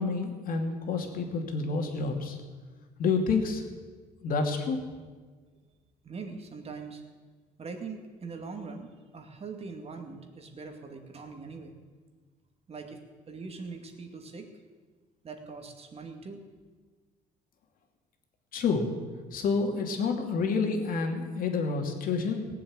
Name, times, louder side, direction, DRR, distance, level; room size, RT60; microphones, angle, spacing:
voice 1, 0.0-2.4 3.0-3.6 4.2-4.8 18.5-18.9 19.3-22.5, left 4 dB, 55° left, 3 dB, 2.6 m, -28 dB
voice 2, 6.0-7.0 7.6-11.7 12.7-13.0 13.3-14.5 15.2-16.4, right 4 dB, 35° right, 5 dB, 2.3 m, -42 dB
18.0 x 7.6 x 8.9 m, 1.4 s
cardioid pair, 110°, 17 cm